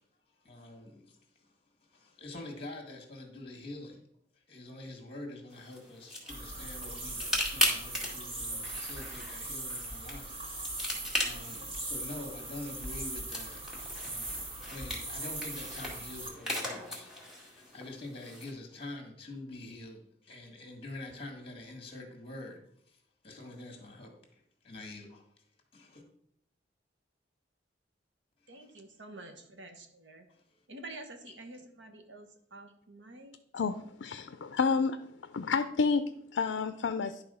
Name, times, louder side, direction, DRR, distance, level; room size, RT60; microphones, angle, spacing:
voice 1, 0.4-1.5 1.9-4.0 4.5-10.7 11.2-13.6 14.0-17.1 17.5-22.6 22.9-23.0 23.2-25.2 25.7-26.0 28.4-28.7 30.3-30.6, left 2 dB, 30° left, 1.7 m, -46 dB
sound 1, 5.5-18.5, left 1 dB, 5° right, 1.9 m, -38 dB
sound 2, 6.3-16.3, right 2 dB, 30° right, 2.0 m, -40 dB
voice 2, 28.5-30.2 30.7-33.4, right 2 dB, 80° right, 1.2 m, -48 dB
voice 3, 33.5-35.0 35.3-37.2, left 5 dB, 80° left, 0.5 m, -30 dB
11.0 x 3.7 x 5.5 m
head